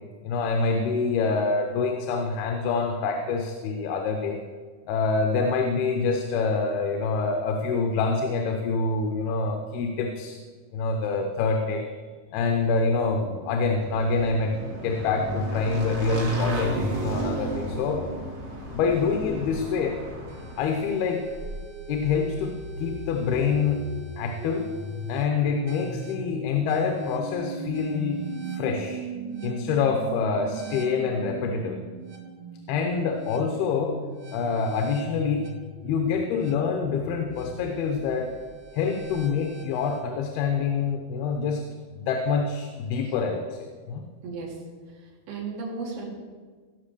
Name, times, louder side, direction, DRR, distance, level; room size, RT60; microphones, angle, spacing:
voice 1, 0.2-4.4 4.9-10.4 10.7-11.9 12.3-18.0 18.7-20.0 20.6-21.3 21.9-23.9 24.2-24.7 25.1-28.2 28.6-29.0 29.4-31.8 32.7-34.0 34.3-35.5 35.8-38.3 38.7-41.6 42.0-44.0, left 4 dB, 85° left, 4 dB, 2.8 m, -26 dB
Motorcycle / Engine, 13.6-20.9, equal, 35° right, 2.6 m, -31 dB
sound 1, 20.3-40.0, right 2 dB, 55° right, 2.3 m, -38 dB
voice 2, 44.2-44.6 44.9-46.1, right 4 dB, 75° right, -2 dB, 4.1 m, -35 dB
17.5 x 6.0 x 6.7 m, 1.5 s
omnidirectional pair, 4.3 m